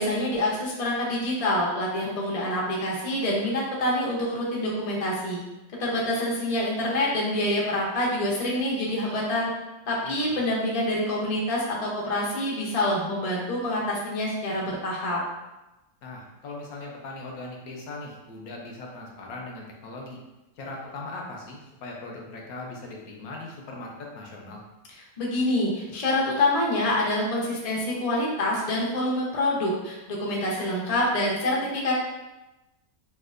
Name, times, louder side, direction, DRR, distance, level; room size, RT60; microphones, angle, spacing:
voice 1, 0.0-5.4 5.8-9.5 9.9-15.2 25.2-31.9, left 1 dB, 55° left, -4 dB, 0.4 m, -26 dB
voice 2, 10.0-10.4 16.0-20.2 20.6-24.6, left 2 dB, 70° left, -1 dB, 1.0 m, -39 dB
4.3 x 2.3 x 2.4 m, 1.0 s
omnidirectional pair, 1.7 m